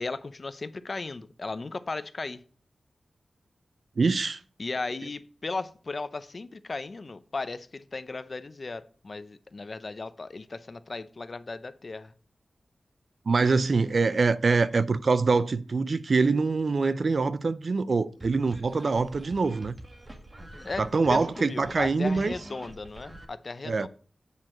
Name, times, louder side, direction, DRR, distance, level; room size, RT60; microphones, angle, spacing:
voice 1, 0.0-2.4 4.6-12.1 20.5-20.8 21.1-23.9, left 3 dB, 55° left, 0.6 m, -36 dB
voice 2, 4.0-4.4 13.3-19.8 20.8-22.3 23.6-23.9, right 4 dB, 65° right, 0.5 m, -24 dB
sound 1, 18.2-23.2, right 1 dB, 35° right, 1.7 m, -45 dB
8.3 x 4.4 x 6.4 m
cardioid pair, 45°, 0 cm